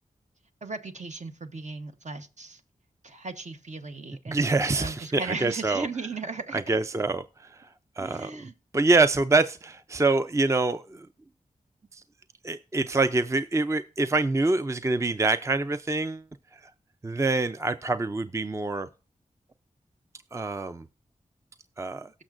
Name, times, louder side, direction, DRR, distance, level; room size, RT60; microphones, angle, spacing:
voice 1, 0.6-2.6 3.0-6.8 8.0-8.5, right 3 dB, 55° right, 1.1 m, -37 dB
voice 2, 4.3-5.9 6.5-7.7 8.0-11.1 11.9-12.0 12.4-16.2 16.5-16.7 17.0-18.9 20.3-20.9 21.8-22.1, right 3 dB, 20° right, 0.5 m, -26 dB
18.0 x 6.4 x 2.5 m
cardioid pair, 50°, 14 cm